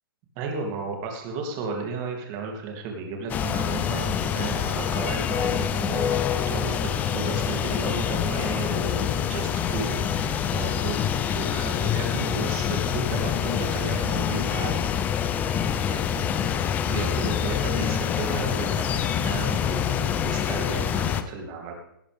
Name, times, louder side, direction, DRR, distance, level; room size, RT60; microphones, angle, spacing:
voice 1, 0.3-14.9 15.3-21.7, right 4 dB, 30° right, 1 dB, 3.0 m, -34 dB
sound 1, 3.3-21.2, left 8 dB, 15° left, 0.5 m, -26 dB
17.5 x 11.0 x 3.6 m, 0.77 s
hypercardioid pair, 155°, 12 cm